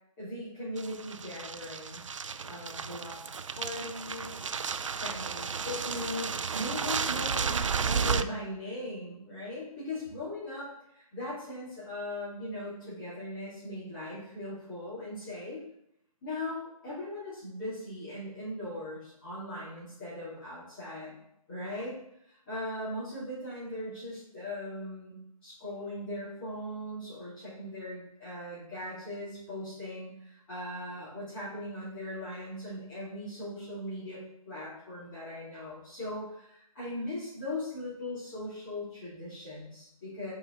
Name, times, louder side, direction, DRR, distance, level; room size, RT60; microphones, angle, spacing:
voice 1, 0.2-2.1 2.4-4.5 5.0-15.6 16.2-21.1 21.5-22.0 22.2-34.2 34.4-40.3, left 1 dB, 20° left, -14 dB, 3.0 m, -39 dB
sound 1, 0.8-8.2, right 6 dB, 55° right, 0.4 m, -33 dB
7.1 x 5.0 x 4.0 m, 0.77 s
hypercardioid pair, 170°, 19 cm